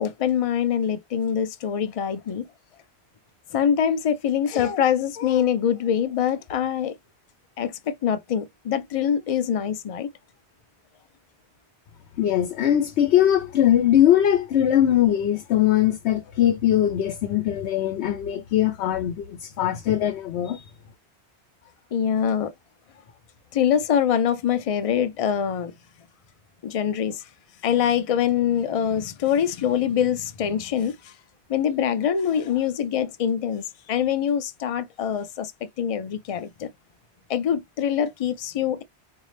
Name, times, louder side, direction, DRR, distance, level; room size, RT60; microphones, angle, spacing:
voice 1, 0.0-2.5 3.5-7.0 7.6-10.1 21.9-22.5 23.5-25.7 26.6-27.2 27.6-31.1 31.5-36.7 37.3-38.8, left 8 dB, 45° left, 0.5 m, -24 dB
voice 2, 12.2-20.6, left 11 dB, 80° left, 0.9 m, -21 dB
4.1 x 2.6 x 3.2 m
omnidirectional pair, 1.1 m